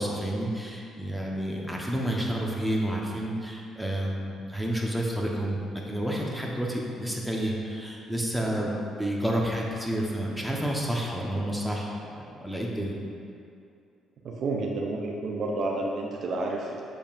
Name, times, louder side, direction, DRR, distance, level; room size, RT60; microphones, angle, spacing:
voice 1, 0.0-8.7 9.0-11.9 12.2-13.0, right 1 dB, ahead, -2 dB, 1.1 m, -30 dB
voice 2, 14.2-16.8, right 2 dB, 60° right, 0 dB, 0.6 m, -30 dB
6.9 x 5.3 x 2.6 m, 2.5 s
hypercardioid pair, 50°, 0 cm